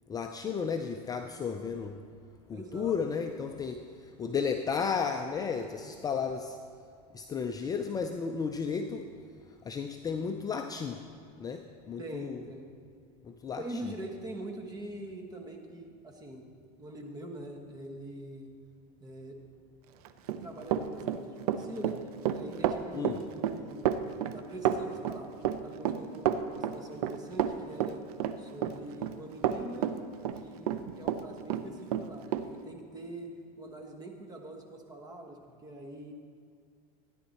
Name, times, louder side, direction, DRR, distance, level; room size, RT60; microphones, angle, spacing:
voice 1, 0.1-2.0 2.5-6.6 7.1-9.1 9.6-11.0 11.4-12.4 13.2-13.6 22.9-23.2, left 6 dB, 20° left, 5 dB, 0.5 m, -33 dB
voice 2, 2.5-3.3 12.0-12.7 13.5-16.5 16.8-18.5 19.0-19.4 20.4-23.8 24.3-28.0 28.4-29.9 30.3-33.3 33.6-36.1, right 1 dB, 20° right, 3 dB, 1.5 m, -44 dB
Run, 20.0-31.2 31.5-32.5, right 10 dB, 80° right, 0.7 m, -30 dB
14.0 x 10.0 x 4.3 m, 2.2 s
supercardioid pair, 135°, 19 cm